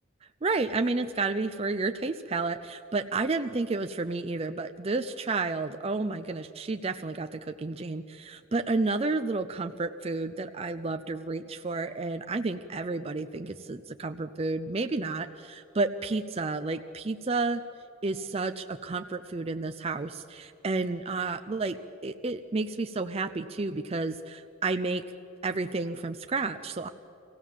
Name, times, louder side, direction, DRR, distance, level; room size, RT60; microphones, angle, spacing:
voice 1, 0.4-17.6 18.0-21.8 22.0-25.0 25.4-26.9, right 3 dB, 30° right, 8 dB, 0.5 m, -31 dB
25.0 x 16.5 x 7.3 m, 2.6 s
head